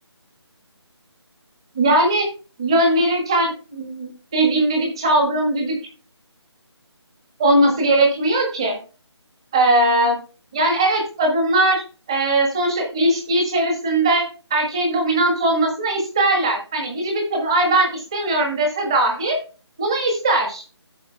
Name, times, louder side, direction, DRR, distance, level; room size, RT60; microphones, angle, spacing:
voice 1, 1.7-2.3 2.6-5.7 7.4-8.8 9.5-10.2 10.5-11.8 12.1-14.2 14.5-19.4 19.8-20.6, right 1 dB, 10° right, 2 dB, 1.5 m, -19 dB
12.5 x 7.3 x 3.3 m, 0.35 s
figure-of-eight pair, 180°, 15 cm